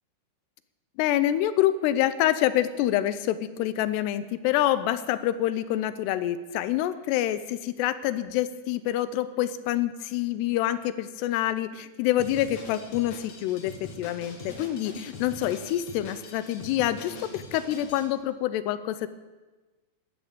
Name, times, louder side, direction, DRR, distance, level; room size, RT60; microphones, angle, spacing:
voice 1, 1.0-19.1, left 13 dB, 85° left, 13 dB, 2.7 m, -27 dB
Drum kit, 12.2-18.1, left 3 dB, 55° left, 2.3 m, -43 dB
12.5 x 10.5 x 7.5 m, 1.2 s
omnidirectional pair, 4.9 m